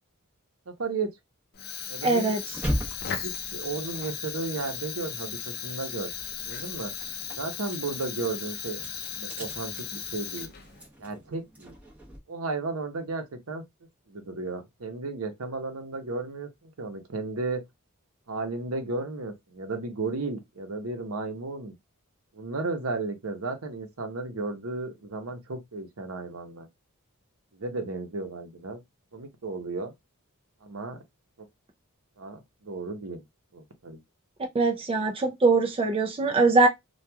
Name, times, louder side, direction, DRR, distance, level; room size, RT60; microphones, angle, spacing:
voice 1, 0.7-1.1 1.9-2.3 3.2-6.1 6.4-6.9 7.4-8.8 9.1-10.5 11.0-11.7 12.3-13.6 14.1-17.6 18.3-21.7 22.3-26.7 27.5-28.8 29.1-29.9 30.6-31.0 32.2-33.2 33.5-34.0, right 3 dB, 70° right, 0.8 m, -34 dB
Fire, 1.5-10.9, left 7 dB, 45° left, 0.5 m, -36 dB
voice 2, 2.0-2.4 34.5-36.7, right 3 dB, 25° right, 0.4 m, -22 dB
sound 1, 2.5-5.5 5.8-12.2, equal, 5° right, 0.8 m, -38 dB
2.9 x 2.3 x 2.2 m
head